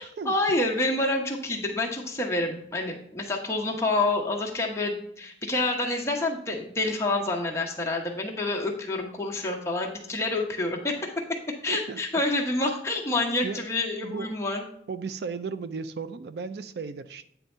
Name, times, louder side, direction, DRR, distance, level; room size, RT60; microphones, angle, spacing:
voice 1, 0.0-11.4 11.6-14.6, left 2 dB, 15° left, -1 dB, 1.0 m, -28 dB
voice 2, 11.7-12.0 13.4-13.6 14.0-14.3 14.9-17.3, right 5 dB, 65° right, 12 dB, 0.4 m, -35 dB
8.8 x 3.5 x 5.4 m, 0.69 s
head